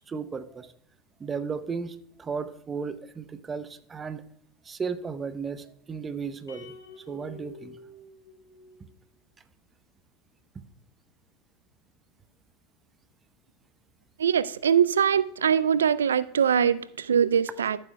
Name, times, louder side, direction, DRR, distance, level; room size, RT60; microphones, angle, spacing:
voice 1, 0.1-0.7 1.2-4.2 4.6-6.8 7.1-7.8 10.5-10.6, right 5 dB, 25° right, 0.7 m, -35 dB
sound 1, 6.5-8.9, left 3 dB, 85° left, 1.4 m, -48 dB
voice 2, 14.2-17.8, right 8 dB, 85° right, 0.3 m, -22 dB
13.5 x 7.5 x 2.2 m
hypercardioid pair, 85°, 0 cm